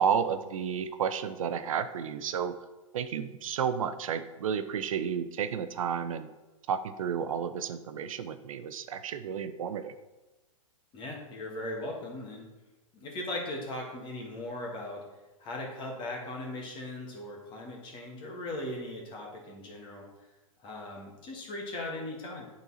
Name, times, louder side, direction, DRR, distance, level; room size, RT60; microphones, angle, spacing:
voice 1, 0.0-2.6 2.9-6.3 6.7-9.9, right 7 dB, 75° right, 11 dB, 0.5 m, -31 dB
voice 2, 10.9-12.5 12.9-15.0 15.4-20.1 20.6-22.5, left 1 dB, 30° left, 0 dB, 1.7 m, -38 dB
9.0 x 4.1 x 4.2 m, 1.1 s
hypercardioid pair, 130°, 18 cm